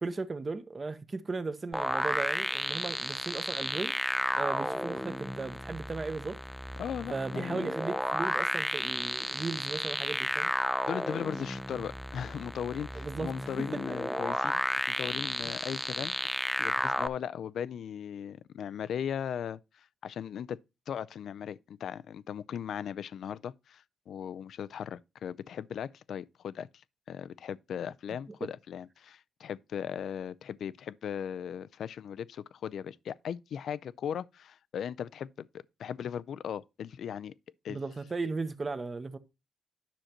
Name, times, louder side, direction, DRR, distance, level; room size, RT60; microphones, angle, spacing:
voice 1, 0.0-4.0 4.3-6.4 7.1-10.5 12.9-13.3 13.7-13.9 37.7-39.2, right 3 dB, 30° right, 0.9 m, -36 dB
sound 1, 1.7-17.1, equal, 5° left, 0.4 m, -32 dB
voice 2, 6.8-7.7 10.9-14.6 14.9-20.6 20.9-35.5 35.8-37.3 37.6-37.8, left 8 dB, 70° left, 0.4 m, -38 dB
10.0 x 6.4 x 2.9 m
cardioid pair, 115°, 0 cm